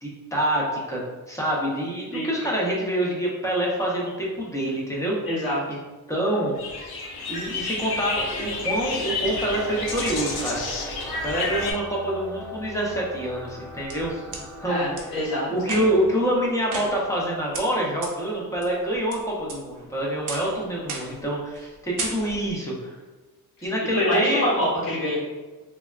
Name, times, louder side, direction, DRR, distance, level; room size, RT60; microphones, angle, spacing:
voice 1, 0.0-1.0 1.3-5.2 6.1-6.5 7.3-10.6 11.2-14.2 14.6-14.8 15.5-23.0 23.6-24.4, right 1 dB, 10° left, -4 dB, 0.5 m, -26 dB
voice 2, 5.2-5.6 14.6-15.5 23.6-25.1, left 1 dB, 65° left, -8 dB, 1.3 m, -25 dB
sound 1, 6.6-11.7, left 3 dB, 85° left, 0.6 m, -30 dB
sound 2, 9.5-16.1, left 1 dB, 40° left, 1.0 m, -41 dB
sound 3, 13.5-14.4 15.0-15.1 15.6-16.1 16.7-17.3 17.5-17.6 18.0-18.1 18.6-19.1 19.5-19.9 20.3-20.5 20.9-21.2 21.5-21.7 22.0-22.5, right 3 dB, 55° right, 0.6 m, -34 dB
3.2 x 2.1 x 2.3 m, 1.3 s
wide cardioid pair, 140°, 37 cm